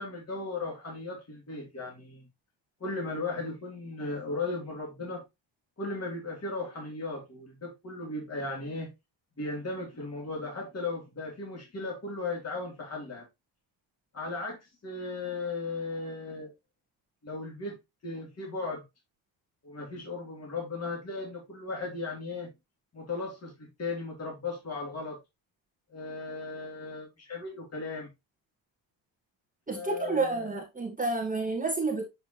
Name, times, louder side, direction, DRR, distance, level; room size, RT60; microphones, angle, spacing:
voice 1, 0.0-2.3 2.8-5.2 5.8-8.9 9.4-13.3 14.1-16.5 17.2-17.8 18.0-18.8 19.6-22.5 22.9-25.2 25.9-28.1 29.7-30.5, left 3 dB, 30° left, 3.1 m, -36 dB
voice 2, 29.7-32.1, right 3 dB, 15° right, 1.6 m, -30 dB
7.8 x 4.8 x 2.9 m
cardioid pair, 120°, 46 cm